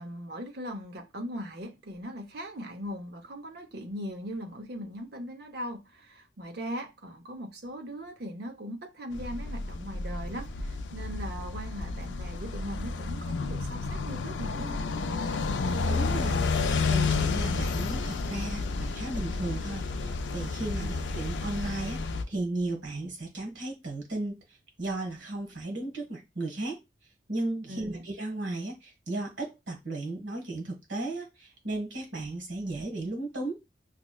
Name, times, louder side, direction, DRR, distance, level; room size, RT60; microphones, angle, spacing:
voice 1, 0.0-14.8 20.8-20.9 27.7-28.1, equal, 60° right, 0.7 m, -39 dB
sound 1, 9.1-22.2, left 4 dB, 90° left, 0.4 m, -31 dB
voice 2, 15.9-16.4 16.9-22.0 22.3-24.4 24.8-26.8 27.3-33.5, right 2 dB, 85° right, 1.4 m, -35 dB
5.8 x 2.1 x 2.3 m
head